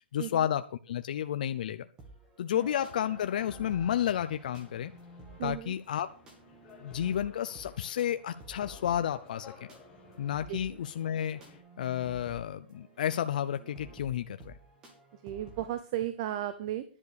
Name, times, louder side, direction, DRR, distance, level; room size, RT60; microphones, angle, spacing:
voice 1, 0.1-1.8 2.4-4.9 5.4-6.1 6.8-9.5 10.2-11.4 11.8-14.5, left 10 dB, 50° left, 10 dB, 0.6 m, -31 dB
sound 1, 2.0-15.7, right 2 dB, 15° right, 2.3 m, -53 dB
sound 2, 2.5-11.6, left 6 dB, 15° left, 1.7 m, -54 dB
voice 2, 5.4-5.7 10.5-10.8 15.1-16.8, right 12 dB, 30° right, 12 dB, 0.7 m, -35 dB
11.0 x 7.4 x 6.9 m, 0.39 s
hypercardioid pair, 175°, 6 cm